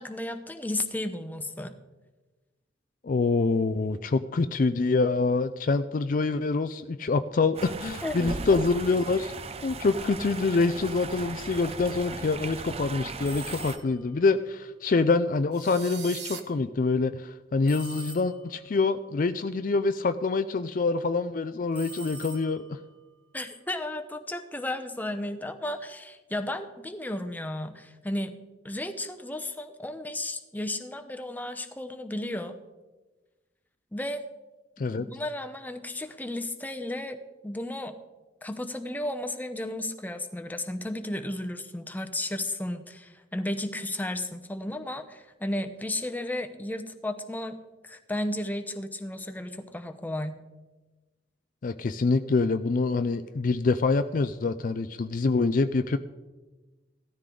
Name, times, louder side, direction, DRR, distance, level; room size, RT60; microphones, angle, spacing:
voice 1, 0.0-1.7 8.0-8.6 23.3-28.3 28.6-32.6 33.9-34.2 35.0-37.9 38.4-47.6 47.8-50.4, left 1 dB, 10° left, 8 dB, 0.8 m, -34 dB
voice 2, 3.0-9.3 9.6-22.8 34.8-35.1 51.6-56.0, left 3 dB, 45° left, 10 dB, 0.4 m, -26 dB
sound 1, 7.5-13.8, right 3 dB, 35° right, 0.6 m, -37 dB
sound 2, 13.2-14.1 17.7-18.7 21.7-22.9, right 2 dB, 10° right, 1.9 m, -44 dB
sound 3, 15.5-16.4, right 8 dB, 60° right, 1.2 m, -40 dB
16.0 x 13.0 x 3.8 m, 1.2 s
head